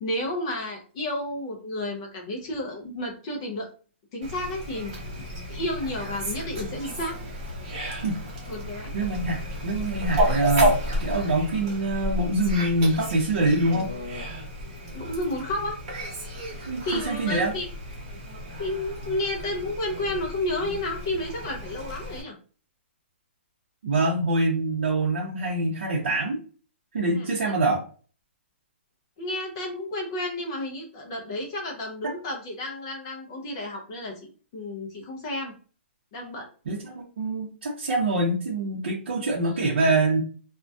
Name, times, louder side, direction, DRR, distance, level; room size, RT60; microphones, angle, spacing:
voice 1, 0.0-3.7 4.1-4.9 5.5-7.2 8.5-8.9 14.9-15.8 16.8-17.7 18.6-22.4 27.1-27.3 29.2-35.5 36.1-36.5 39.4-39.6, left 1 dB, 20° left, 1 dB, 0.4 m, -31 dB
Fowl, 4.2-22.2, equal, 35° right, 0.9 m, -32 dB
voice 2, 8.9-9.4 9.6-13.9 16.7-17.5 23.8-26.4 26.9-27.8 32.0-32.1 36.7-40.2, right 2 dB, 55° right, -4 dB, 0.6 m, -25 dB
2.3 x 2.1 x 2.5 m, 0.39 s
hypercardioid pair, 180°, 7 cm